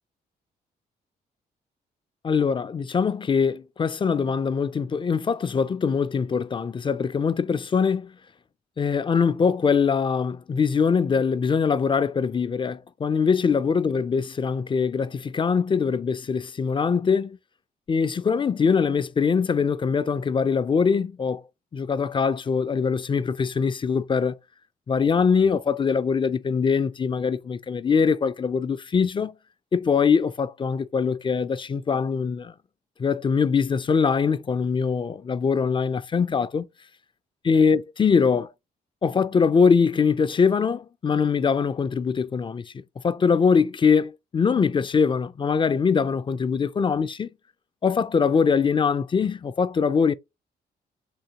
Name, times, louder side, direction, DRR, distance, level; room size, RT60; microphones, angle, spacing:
voice 1, 2.2-8.1 8.8-17.4 17.9-21.4 21.7-24.4 24.9-29.3 29.7-32.5 33.0-36.6 37.4-38.5 39.0-42.6 43.0-47.3 47.8-50.1, left 6 dB, 30° left, 0.4 m, -22 dB
3.8 x 3.0 x 2.8 m
cardioid pair, 65°, 17 cm